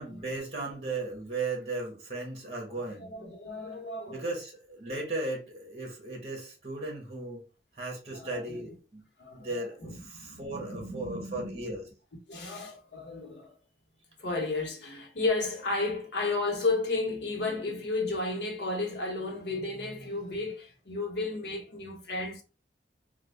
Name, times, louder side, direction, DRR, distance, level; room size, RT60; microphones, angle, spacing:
voice 1, 0.0-3.1 4.1-7.4 7.8-9.0 9.4-11.8, right 2 dB, 35° right, 1.1 m, -36 dB
voice 2, 2.7-4.3 8.1-8.8 9.2-9.5 9.8-11.7 12.3-13.6 14.2-22.4, left 3 dB, 80° left, 1.0 m, -33 dB
3.3 x 2.3 x 3.2 m
head